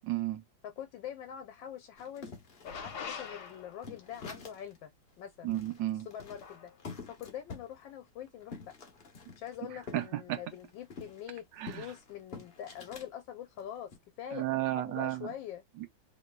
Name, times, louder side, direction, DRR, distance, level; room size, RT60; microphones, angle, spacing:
voice 1, 0.1-0.4 5.4-6.1 9.9-10.4 11.6-11.9 14.3-15.3 15.8-15.9, right 15 dB, 75° right, 1.3 m, -33 dB
voice 2, 0.6-2.3 2.6-4.9 5.2-5.5 6.0-6.7 7.1-8.7 9.4-13.9 14.2-15.6, left 10 dB, 80° left, 1.4 m, -44 dB
sound 1, 2.0-4.8 5.1-5.2 5.5-10.1 10.4-13.1 13.6-14.0, left 4 dB, 45° left, 0.7 m, -48 dB
sound 2, 2.6-4.0 6.4-6.8, left 6 dB, 65° left, 1.2 m, -43 dB
3.2 x 3.0 x 2.2 m
omnidirectional pair, 2.1 m